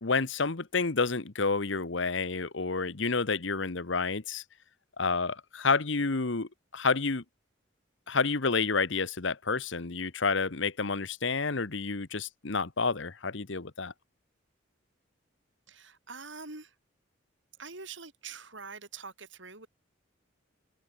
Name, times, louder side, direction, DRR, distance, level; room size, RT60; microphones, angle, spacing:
voice 1, 0.0-4.4 5.0-7.2 8.1-13.9, left 4 dB, 65° left, 1.1 m, -29 dB
voice 2, 15.7-16.7 17.6-19.7, right 4 dB, 65° right, 5.8 m, -44 dB
head